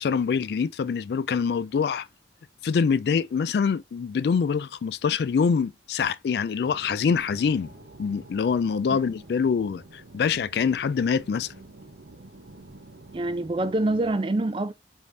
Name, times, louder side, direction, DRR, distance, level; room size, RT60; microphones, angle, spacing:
voice 1, 0.0-2.1 2.6-7.7 8.0-11.5, left 6 dB, 65° left, 0.3 m, -25 dB
sound 1, 6.6-14.1, right 2 dB, 80° right, 0.9 m, -48 dB
voice 2, 13.1-14.7, right 2 dB, 30° right, 0.4 m, -26 dB
5.1 x 2.8 x 3.2 m
head